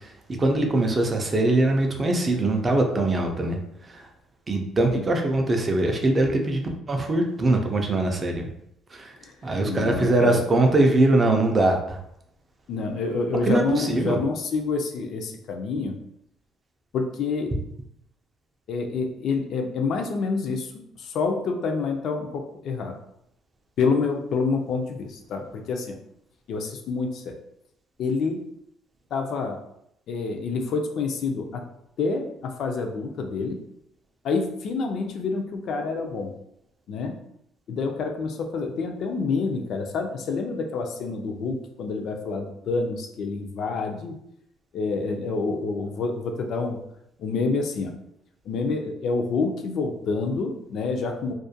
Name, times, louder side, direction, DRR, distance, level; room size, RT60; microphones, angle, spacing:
voice 1, 0.4-3.6 4.5-8.5 8.9-9.1 9.4-12.0 13.5-14.2, right 2 dB, 25° right, 3 dB, 0.3 m, -22 dB
voice 2, 9.6-10.4 12.7-16.0 16.9-17.5 18.7-23.0 23.8-26.0 26.5-27.4 28.0-28.4 29.1-29.6 30.1-31.6 32.0-33.6 34.2-36.3 36.9-37.2 37.7-44.2 44.7-46.8 47.2-47.9 48.5-51.3, left 4 dB, 55° left, 4 dB, 0.3 m, -27 dB
2.3 x 2.1 x 2.7 m, 0.77 s
cardioid pair, 155°, 0 cm